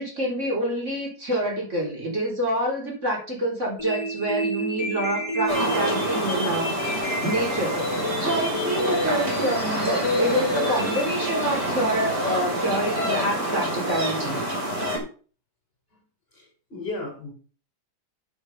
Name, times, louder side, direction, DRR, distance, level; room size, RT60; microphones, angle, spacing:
voice 1, 0.0-7.8 8.2-14.4, right 1 dB, 45° right, -2 dB, 4.2 m, -27 dB
sound 1, 3.8-11.8, left 1 dB, 20° left, 4.6 m, -29 dB
sound 2, 5.5-15.0, equal, 85° right, 4.4 m, -27 dB
voice 2, 16.3-17.3, left 2 dB, 35° left, 2 dB, 3.8 m, -35 dB
8.3 x 8.1 x 5.5 m, 0.40 s
omnidirectional pair, 1.8 m